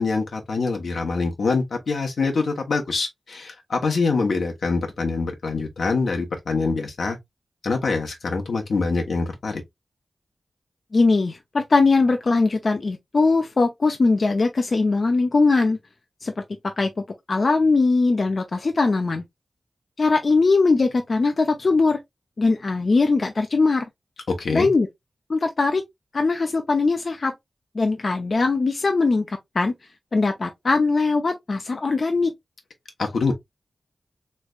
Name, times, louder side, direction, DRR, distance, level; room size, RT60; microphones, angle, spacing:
voice 1, 0.0-7.2 7.6-9.6 24.3-24.7 33.0-33.3, left 4 dB, 85° left, 1.0 m, -24 dB
voice 2, 10.9-15.8 16.2-16.3 16.6-16.9 17.3-19.2 20.0-22.0 22.4-23.8 24.5-24.9 25.3-25.8 26.1-27.3 27.7-29.7 30.1-32.3, left 3 dB, 60° left, 0.6 m, -20 dB
3.3 x 3.2 x 2.4 m
cardioid pair, 55°, 0 cm